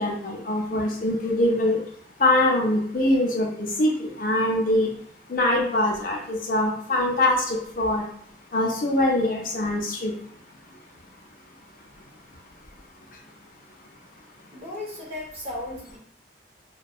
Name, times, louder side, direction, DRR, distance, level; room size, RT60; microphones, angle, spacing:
voice 1, 0.0-1.8 2.2-4.9 5.3-8.0 8.5-10.1, left 1 dB, 50° left, 0 dB, 0.5 m, -23 dB
voice 2, 14.5-16.0, left 1 dB, 35° right, -4 dB, 0.9 m, -35 dB
2.6 x 2.1 x 2.3 m, 0.63 s
head